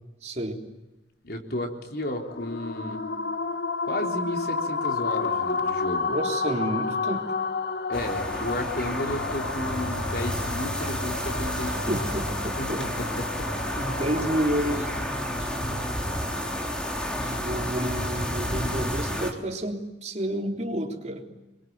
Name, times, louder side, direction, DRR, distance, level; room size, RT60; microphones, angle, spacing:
voice 1, 0.2-0.6 6.1-7.3 11.9-12.8 13.8-16.5 17.1-21.3, right 1 dB, 40° right, 2 dB, 3.7 m, -30 dB
voice 2, 1.2-3.0 3.8-6.1 7.9-12.0 12.6-13.5 15.4-15.5, left 1 dB, 60° left, 3 dB, 3.8 m, -33 dB
sound 1, 2.0-19.4, left 4 dB, 75° left, 1.3 m, -32 dB
sound 2, 7.9-19.3, equal, 5° left, 3.5 m, -31 dB
27.0 x 23.0 x 9.6 m, 1.1 s
head